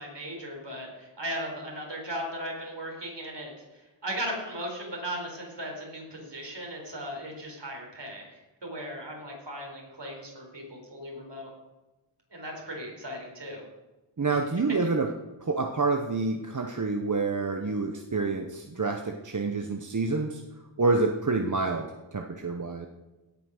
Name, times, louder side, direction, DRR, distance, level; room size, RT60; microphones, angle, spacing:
voice 1, 0.0-3.5 4.0-8.2 8.6-11.5 12.3-13.6 14.3-14.4, equal, 60° right, 0 dB, 4.1 m, -37 dB
voice 2, 14.2-15.1 15.4-20.4 20.8-22.9, right 3 dB, 40° right, 4 dB, 0.9 m, -28 dB
17.0 x 5.8 x 6.5 m, 1.1 s
wide cardioid pair, 70°, 48 cm